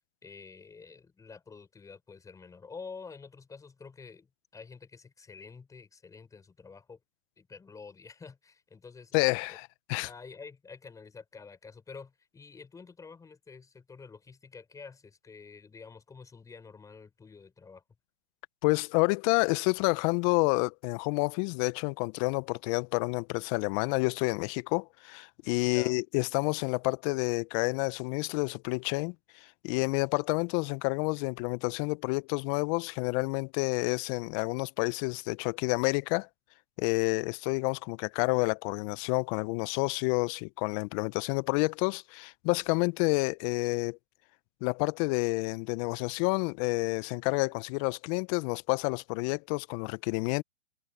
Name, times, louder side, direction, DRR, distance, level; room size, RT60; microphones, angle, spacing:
voice 1, 0.2-7.0 7.4-9.2 9.5-9.6 10.0-17.8 25.7-26.0, left 5 dB, 10° left, 5.2 m, -48 dB
voice 2, 9.1-10.1 18.6-36.3 36.8-44.0 44.6-50.4, left 30 dB, 30° left, 1.1 m, -29 dB
hypercardioid pair, 130°, 34 cm